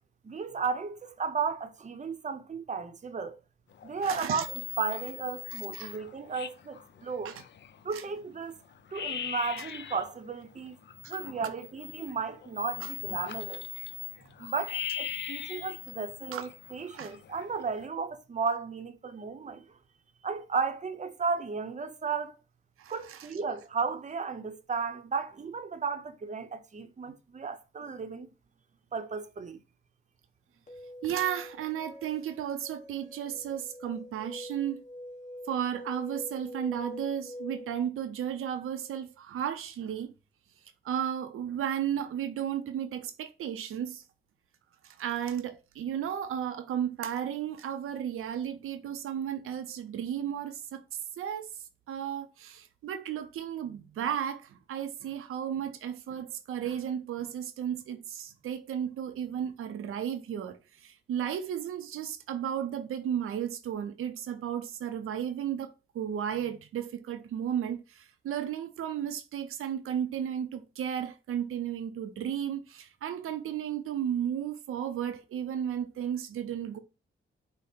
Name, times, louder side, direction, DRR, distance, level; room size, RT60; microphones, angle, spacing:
voice 1, 0.2-3.4 3.8-4.5 4.8-7.3 7.8-8.6 8.9-10.8 11.1-13.6 14.4-19.6 20.2-22.3 22.9-28.3 28.9-29.6, right 5 dB, 35° right, 0.6 m, -34 dB
sound 1, 3.7-4.1 4.4-7.9 8.3-8.4 8.7-10.1 10.5-17.9, left 9 dB, 60° left, 0.5 m, -40 dB
voice 2, 4.0-4.5 5.5-6.0 7.2-7.4 7.9-8.0 11.0-11.2 12.8-12.9 16.3-16.4 16.9-17.1 22.8-23.3 31.0-34.8 35.5-40.1 40.8-44.0 44.8-50.8 51.2-51.5 51.9-76.8, right 9 dB, 90° right, 0.5 m, -34 dB
sound 2, 30.7-37.8, left 1 dB, 35° left, 1.1 m, -45 dB
5.0 x 2.0 x 4.2 m
cardioid pair, 70°, 21 cm